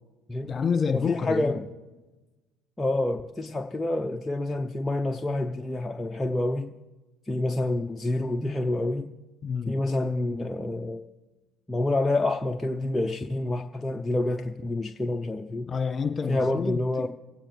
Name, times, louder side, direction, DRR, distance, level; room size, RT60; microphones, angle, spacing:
voice 1, 0.4-1.6 9.4-9.8 15.7-17.1, left 5 dB, 35° left, 5 dB, 1.7 m, -28 dB
voice 2, 0.9-1.6 2.8-6.7 7.3-9.1 9.7-11.0 11.7-15.7 16.3-17.1, left 2 dB, 15° left, 4 dB, 0.7 m, -28 dB
26.0 x 8.9 x 3.4 m, 1.2 s
hypercardioid pair, 70°, 0 cm